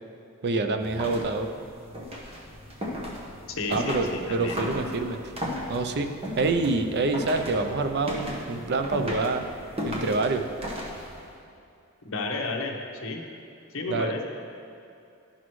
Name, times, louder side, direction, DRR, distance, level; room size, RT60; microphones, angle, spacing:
voice 1, 0.4-1.5 3.7-5.2 5.7-9.4 9.9-10.4 13.9-14.1, right 3 dB, 50° right, 7 dB, 0.5 m, -26 dB
sound 1, 0.8-11.3, equal, 30° right, 1.2 m, -36 dB
voice 2, 3.5-4.6 12.0-12.8 13.0-13.2 13.7-14.3, left 3 dB, 65° left, 2 dB, 0.9 m, -31 dB
12.5 x 6.1 x 3.1 m, 2.7 s
head